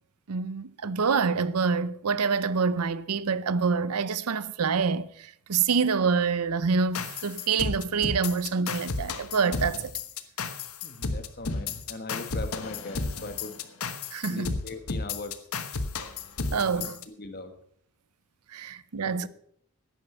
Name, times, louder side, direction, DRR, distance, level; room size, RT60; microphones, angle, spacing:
voice 1, 0.3-10.0 14.1-14.5 16.5-17.0 18.5-19.3, right 5 dB, 85° right, 0.6 m, -26 dB
sound 1, 6.9-17.0, left 4 dB, 75° left, 1.1 m, -33 dB
voice 2, 10.8-13.5 14.2-15.4 16.7-17.5 19.0-19.3, left 2 dB, 45° left, 1.5 m, -40 dB
11.0 x 9.5 x 6.7 m
head